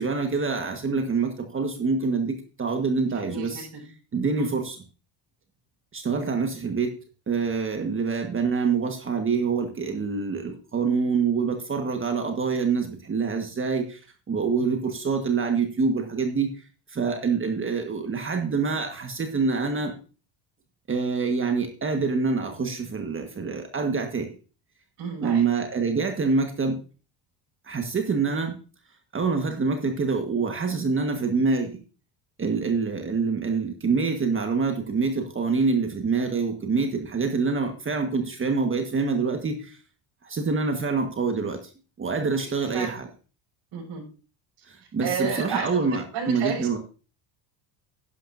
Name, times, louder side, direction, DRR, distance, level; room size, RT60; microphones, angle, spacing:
voice 1, 0.0-3.7 4.1-4.8 5.9-6.9 7.3-14.0 14.3-16.5 16.9-19.9 20.9-24.3 25.2-26.8 27.6-28.6 29.1-31.8 32.4-39.8 40.2-41.7 42.0-43.1 44.7-46.8, right 4 dB, 25° right, 4 dB, 1.5 m, -26 dB
voice 2, 3.1-3.9 4.4-4.5 25.0-25.4 42.4-42.9 43.7-44.0 45.0-46.7, right 5 dB, 60° right, -8 dB, 6.4 m, -32 dB
11.5 x 10.5 x 2.6 m, 0.35 s
cardioid pair, 115°, 48 cm